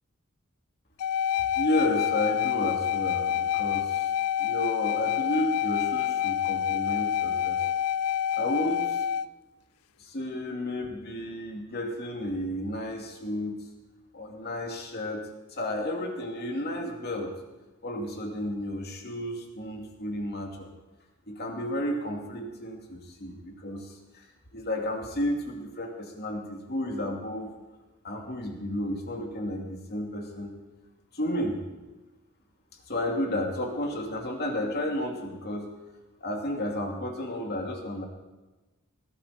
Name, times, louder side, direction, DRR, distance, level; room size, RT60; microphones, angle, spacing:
sound 1, 1.0-9.3, left 10 dB, 75° left, 0.4 m, -27 dB
voice 1, 1.5-4.1 4.4-7.6 8.3-9.0 10.0-13.6 14.1-15.2 15.5-17.3 17.8-20.7 21.3-24.3 24.5-27.5 28.0-30.5 31.1-31.6 32.9-35.7 36.2-38.0, left 1 dB, 45° left, 1 dB, 2.5 m, -32 dB
19.5 x 12.0 x 4.2 m, 1.1 s
head